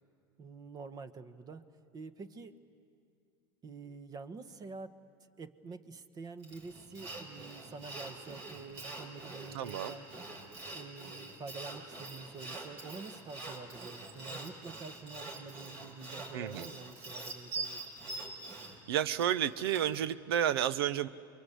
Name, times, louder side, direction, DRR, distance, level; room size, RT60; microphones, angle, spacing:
voice 1, 0.4-1.7 1.9-2.5 3.6-10.1 10.7-17.9, right 4 dB, 30° right, 11 dB, 1.3 m, -47 dB
Sawing, 6.4-20.0, right 3 dB, 55° right, 6.5 m, -44 dB
voice 2, 9.5-9.9 16.3-16.7 18.9-21.1, right 10 dB, 85° right, 17 dB, 0.8 m, -31 dB
29.5 x 23.5 x 8.2 m, 2.4 s
supercardioid pair, 110°, 12 cm